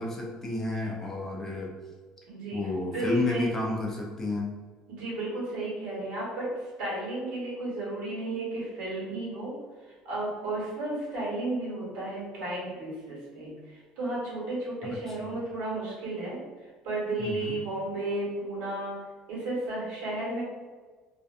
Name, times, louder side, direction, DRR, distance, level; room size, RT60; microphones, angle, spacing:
voice 1, 0.0-1.7 2.5-4.5 15.1-15.3 17.2-17.6, left 2 dB, 20° left, -1 dB, 0.5 m, -31 dB
voice 2, 2.3-2.7 2.9-3.5 4.9-6.5 6.8-9.5 10.0-19.0 19.3-20.4, right 2 dB, 80° right, -6 dB, 1.2 m, -33 dB
2.6 x 2.1 x 2.5 m, 1.4 s
cardioid pair, 155°, 2 cm